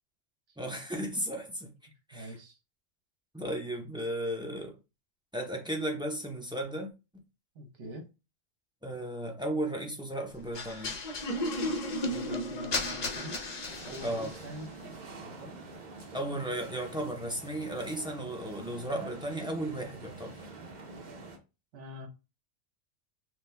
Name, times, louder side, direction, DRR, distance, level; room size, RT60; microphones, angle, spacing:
voice 1, 0.6-1.7 2.1-2.3 3.3-4.8 5.3-6.9 8.8-11.0 14.0-14.3 16.1-20.4, right 1 dB, 5° right, 0.3 m, -35 dB
voice 2, 2.1-2.6 7.5-8.1 12.1-13.4 13.9-15.7 21.7-22.1, right 1 dB, 60° right, 1.3 m, -45 dB
sound 1, 10.5-14.5, left 1 dB, 45° left, 0.5 m, -34 dB
sound 2, 13.7-21.4, right 3 dB, 40° right, 0.7 m, -46 dB
5.3 x 2.2 x 3.3 m
omnidirectional pair, 1.4 m